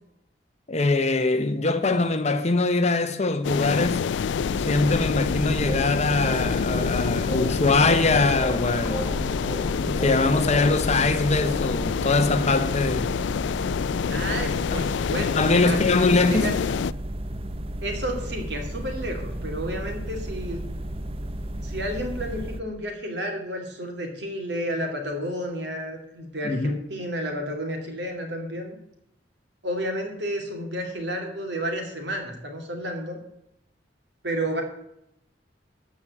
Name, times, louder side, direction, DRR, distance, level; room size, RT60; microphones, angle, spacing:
voice 1, 0.7-4.1 4.7-9.1 9.9-13.1 14.7-14.8 15.3-16.5 26.4-26.8, left 3 dB, 40° left, 0.9 m, -22 dB
sound 1, 3.4-16.9, left 7 dB, 75° left, 0.3 m, -27 dB
sound 2, 4.4-22.6, right 1 dB, 30° right, 0.6 m, -34 dB
sound 3, 5.5-10.8, equal, 20° left, 2.4 m, -35 dB
voice 2, 14.1-16.5 17.8-20.6 21.6-28.8 29.6-33.2 34.2-34.6, equal, 65° right, 2.5 m, -31 dB
13.0 x 4.9 x 8.6 m
head